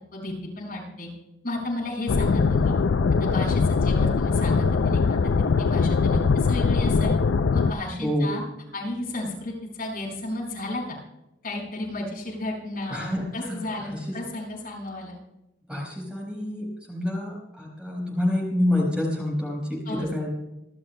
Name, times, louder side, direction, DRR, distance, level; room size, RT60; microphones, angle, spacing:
voice 1, 0.1-1.1 1.4-2.7 3.2-5.2 5.6-7.1 7.5-8.4 8.7-11.0 11.4-15.2 19.8-20.1, left 1 dB, 50° left, -3 dB, 6.3 m, -33 dB
sound 1, 2.1-7.7, left 4 dB, 75° left, 0.5 m, -21 dB
voice 2, 8.0-8.3 12.9-13.6 13.9-14.0 15.7-20.3, left 1 dB, 5° right, -2 dB, 4.4 m, -27 dB
27.5 x 12.0 x 2.2 m, 0.93 s
head